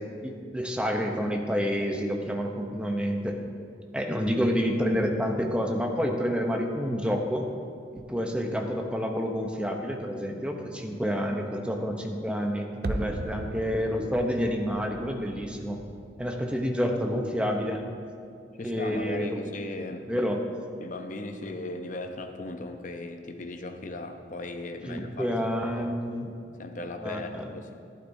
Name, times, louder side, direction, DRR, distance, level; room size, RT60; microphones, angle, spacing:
voice 1, 0.0-3.4 3.9-7.5 8.0-15.8 16.2-17.8 18.6-19.4 20.1-20.4 24.9-26.3 27.0-27.5, equal, 5° right, 2 dB, 0.7 m, -29 dB
sound 1, 12.8-17.8 18.0-18.1, right 2 dB, 55° right, 0.5 m, -38 dB
voice 2, 18.5-20.1 20.8-25.9 26.6-27.7, left 2 dB, 40° left, 5 dB, 0.7 m, -37 dB
12.0 x 11.5 x 2.7 m, 2.3 s
head